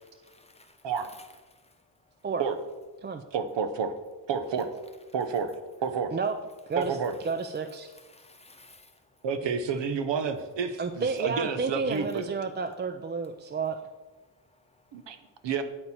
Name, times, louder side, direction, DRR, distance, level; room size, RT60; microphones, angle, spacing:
voice 1, 0.0-1.8 7.9-9.2 14.4-15.3, left 2 dB, 15° left, 5 dB, 0.9 m, -57 dB
voice 2, 3.3-3.9 4.3-4.7 5.1-5.5 5.8-6.2 6.8-7.2 9.2-12.2 14.9-15.2 15.4-15.6, right 6 dB, 75° right, 9 dB, 1.0 m, -29 dB
voice 3, 7.2-7.9 10.8-13.8, right 5 dB, 25° right, 8 dB, 0.3 m, -31 dB
9.1 x 8.6 x 4.2 m, 1.2 s
wide cardioid pair, 150°, 43 cm